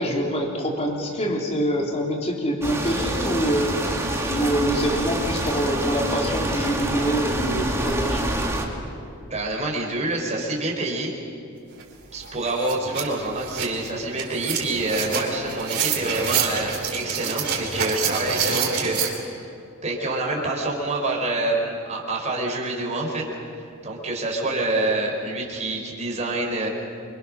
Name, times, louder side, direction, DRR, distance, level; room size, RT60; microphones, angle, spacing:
voice 1, 0.0-8.3, equal, 30° left, 0 dB, 3.6 m, -25 dB
sound 1, 2.6-8.6, right 1 dB, 15° right, 2.7 m, -26 dB
voice 2, 9.3-11.1 12.1-19.5 19.8-23.2 23.6-26.7, right 2 dB, 35° right, -1 dB, 4.6 m, -27 dB
sound 2, 11.8-11.9 12.2-19.1, right 6 dB, 55° right, 4.1 m, -27 dB
28.0 x 25.0 x 6.5 m, 2.6 s
head